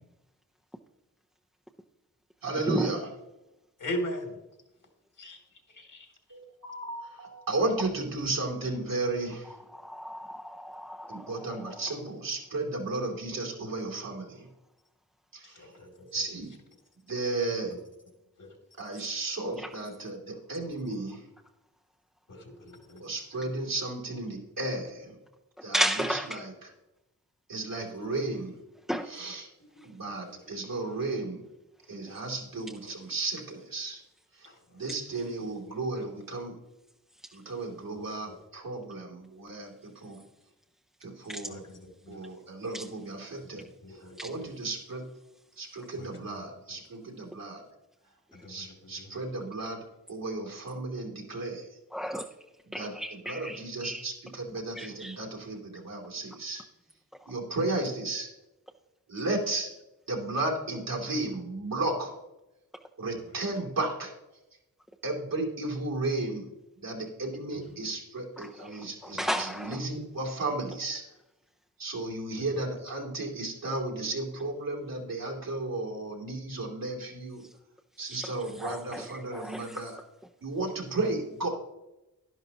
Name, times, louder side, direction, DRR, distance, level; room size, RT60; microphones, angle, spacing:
voice 1, 2.4-3.1 6.3-9.6 11.1-14.5 15.3-15.7 16.1-16.5 17.1-17.7 18.8-21.2 23.0-25.2 25.6-25.8 26.1-26.7 27.5-28.6 29.1-29.5 29.8-31.4 31.9-34.0 34.3-36.6 37.3-40.2 41.0-41.6 42.1-45.0 45.6-47.6 48.5-49.8 50.1-51.8 52.7-52.9 53.2-56.6 57.3-58.3 59.1-59.7 60.1-62.1 63.0-64.1 65.0-66.5 66.8-71.0 71.8-77.4 78.0-80.0 80.4-81.5, right 2 dB, 75° right, -1 dB, 2.9 m, -34 dB
voice 2, 3.8-4.4 5.2-5.4 15.5-15.9 18.4-18.5 22.3-23.0 41.5-41.6 42.1-42.2 43.8-44.5 46.0-46.1 48.3-48.5, equal, 65° left, 2 dB, 2.8 m, -37 dB
voice 3, 9.7-11.8 19.6-19.7 25.7-26.4 28.9-29.1 41.3-41.4 42.7-42.8 44.2-44.3 51.9-52.3 52.7-54.0 54.7-55.2 68.4-69.8 77.4-77.5 78.0-78.3 78.6-79.8, equal, ahead, 3 dB, 0.7 m, -34 dB
11.0 x 11.0 x 2.9 m, 0.95 s
cardioid pair, 60°, 34 cm